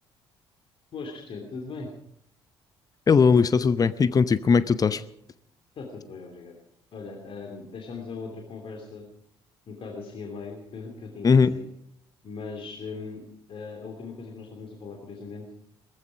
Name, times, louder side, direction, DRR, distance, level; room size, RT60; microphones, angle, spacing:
voice 1, 0.9-1.9 5.7-6.5 6.9-9.0 9.7-11.7 12.2-15.5, left 4 dB, 40° left, 1 dB, 2.9 m, -39 dB
voice 2, 3.1-5.0 11.2-11.5, left 5 dB, 25° left, 16 dB, 0.8 m, -19 dB
19.0 x 15.0 x 5.0 m, 0.70 s
figure-of-eight pair, 50°, 14 cm